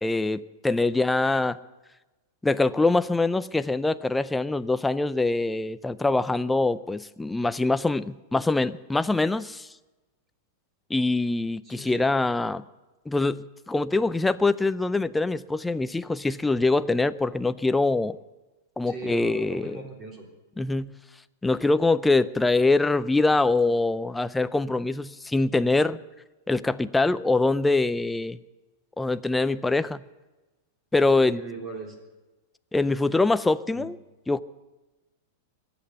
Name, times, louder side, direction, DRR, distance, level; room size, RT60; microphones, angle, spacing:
voice 1, 0.0-1.6 2.4-9.7 10.9-12.6 13.1-18.2 18.8-19.8 20.6-20.9 21.4-26.0 26.5-28.4 29.0-30.0 30.9-31.4 32.7-34.0 34.3-34.4, left 3 dB, 5° left, 13 dB, 0.4 m, -24 dB
voice 2, 11.6-12.1 18.9-20.3 31.2-32.0 33.7-33.9, right 2 dB, 25° right, 1 dB, 3.5 m, -39 dB
22.5 x 8.7 x 6.9 m, 1.1 s
supercardioid pair, 150°, 0 cm